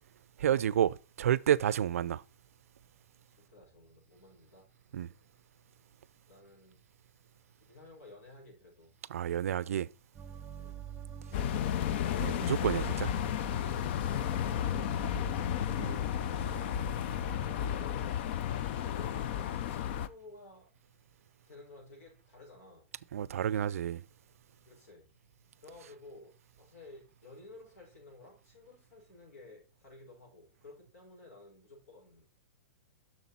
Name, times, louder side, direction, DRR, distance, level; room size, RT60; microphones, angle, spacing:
voice 1, 0.4-2.2 4.9-5.1 9.1-9.9 12.2-13.1 15.8-16.0 23.1-24.0, right 10 dB, 85° right, 0.4 m, -30 dB
voice 2, 3.3-4.7 6.2-6.8 7.7-8.9 10.6-10.8 15.6-16.1 17.1-18.2 18.7-20.7 21.5-22.9 24.6-25.1 25.6-26.3 26.6-32.3, left 2 dB, 85° left, 5.4 m, -53 dB
sound 1, 10.1-17.7, right 7 dB, 15° right, 0.8 m, -47 dB
sound 2, 11.3-20.1, left 10 dB, 50° left, 0.5 m, -33 dB
7.1 x 6.5 x 4.2 m
hypercardioid pair, 150°, 8 cm